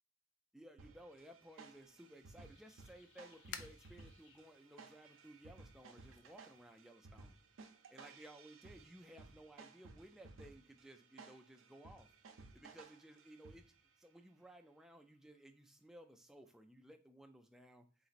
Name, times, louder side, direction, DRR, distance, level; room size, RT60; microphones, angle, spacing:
voice 1, 0.5-7.4 7.9-12.1 12.5-18.1, right 1 dB, ahead, 4 dB, 0.3 m, -58 dB
sound 1, 0.8-13.9, right 3 dB, 75° right, 0.6 m, -59 dB
sound 2, 1.6-6.8, left 7 dB, 65° left, 0.4 m, -57 dB
4.0 x 3.8 x 2.5 m, 0.38 s
head